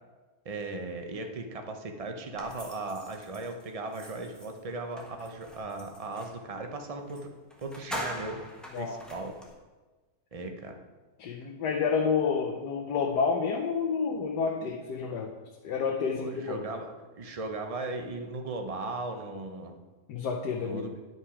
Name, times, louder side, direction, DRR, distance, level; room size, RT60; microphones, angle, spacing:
voice 1, 0.4-7.3 7.6-8.4 8.8-9.3 10.3-10.8 16.1-19.7 20.6-21.0, right 2 dB, 45° right, 5 dB, 0.4 m, -37 dB
sound 1, 2.4-6.4 7.1-7.2 7.5-9.5, equal, ahead, 1.2 m, -43 dB
voice 2, 11.2-15.3 15.6-16.6 20.1-20.9, left 5 dB, 85° left, 1 dB, 1.4 m, -29 dB
10.5 x 5.9 x 4.8 m, 1.3 s
omnidirectional pair, 1.7 m